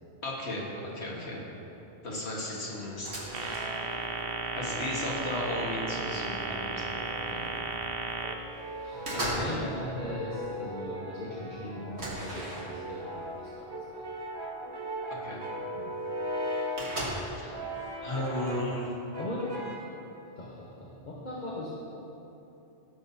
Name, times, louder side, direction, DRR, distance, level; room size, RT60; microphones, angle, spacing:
voice 1, 0.2-1.5 2.0-3.1 3.7-4.0 4.5-7.0 8.9-9.6 15.1-15.4 17.0-17.6 18.0-18.9, left 1 dB, 90° left, -4 dB, 1.9 m, -36 dB
Brass instrument, 2.8-4.8 5.5-7.5 8.2-16.9 17.5-18.8 19.1-20.0, equal, 25° right, 1.0 m, -39 dB
sound 1, 2.9-4.1 4.4-5.6 6.2-6.4 6.7-7.7 8.1-8.5 8.7-9.7 9.9-10.4 10.9-11.0 11.2-11.3 11.9-13.0 13.9-14.0 14.4-14.5 15.7-15.8 15.9-16.0 16.2-17.5, right 1 dB, 85° right, 1.9 m, -38 dB
sound 2, 3.3-8.3, right 4 dB, 65° right, 0.9 m, -34 dB
voice 2, 7.3-7.8 8.8-14.0 15.7-15.9 19.2-19.5 20.4-21.8, left 1 dB, 45° left, -6 dB, 1.2 m, -39 dB
15.5 x 7.1 x 2.8 m, 3.0 s
omnidirectional pair, 1.1 m